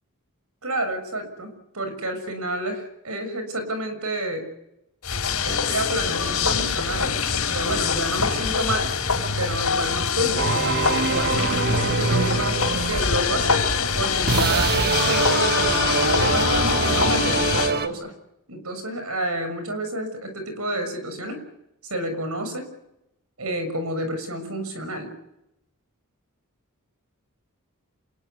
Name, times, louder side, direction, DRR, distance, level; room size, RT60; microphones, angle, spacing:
voice 1, 0.6-4.5 5.4-7.1 7.5-8.9 9.4-18.1 18.5-21.5 21.9-22.7 23.4-25.1, right 1 dB, 75° right, 8 dB, 6.8 m, -29 dB
sound 1, 5.0-17.7, left 5 dB, 90° left, 4.8 m, -24 dB
sound 2, 10.4-17.9, right 4 dB, 45° right, 1.3 m, -25 dB
28.0 x 20.0 x 9.7 m, 0.87 s
head